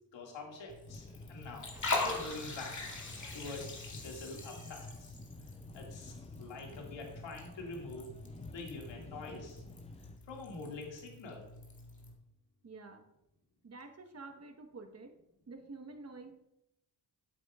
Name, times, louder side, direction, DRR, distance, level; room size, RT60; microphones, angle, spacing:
voice 1, 0.1-1.7 2.0-5.2 5.7-8.1 8.5-9.6 10.3-11.5, left 3 dB, 75° left, 0 dB, 2.2 m, -45 dB
Liquid, 0.7-12.1, left 3 dB, 40° left, 2.3 m, -43 dB
sound 1, 0.9-10.2, left 3 dB, 15° left, 0.5 m, -51 dB
Cat, 1.7-5.0, right 1 dB, 5° right, 3.2 m, -56 dB
voice 2, 12.6-13.1 13.6-15.2 15.5-16.3, right 3 dB, 35° right, 6 dB, 1.2 m, -49 dB
9.8 x 8.0 x 2.4 m, 0.85 s
supercardioid pair, 60°, 45 cm